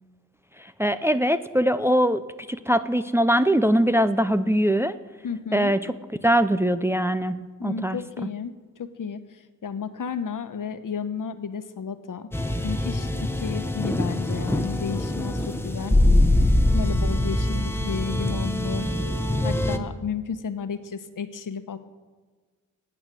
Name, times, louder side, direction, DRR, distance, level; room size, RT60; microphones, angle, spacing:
voice 1, 0.6-5.0 5.5-5.9 6.2-8.0, equal, 10° right, 11 dB, 0.4 m, -22 dB
voice 2, 5.2-5.7 7.6-12.3 12.6-16.0 16.7-18.9 19.4-21.8, left 6 dB, 80° left, 10 dB, 1.0 m, -32 dB
sound 1, 12.3-19.8, left 1 dB, 5° left, 0.9 m, -23 dB
12.5 x 9.0 x 9.1 m, 1.5 s
wide cardioid pair, 155°, 32 cm